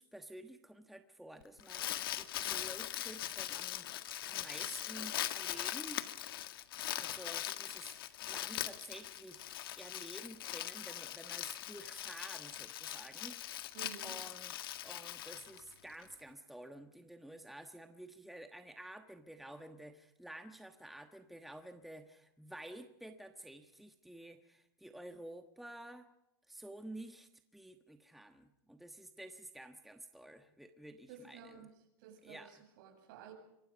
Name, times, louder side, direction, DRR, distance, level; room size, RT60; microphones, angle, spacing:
voice 1, 0.0-3.9 4.3-6.1 7.0-9.5 9.8-13.7 14.0-14.6 14.8-26.1 26.5-31.7 32.2-32.6, right 1 dB, ahead, 6 dB, 1.3 m, -51 dB
Crumpling crinkling, 1.4-16.0, left 13 dB, 80° left, 1.8 m, -41 dB
voice 2, 13.7-14.2 31.1-31.7 32.0-33.3, right 7 dB, 60° right, 4 dB, 7.8 m, -52 dB
26.5 x 24.0 x 5.2 m, 0.82 s
supercardioid pair, 140°, 12 cm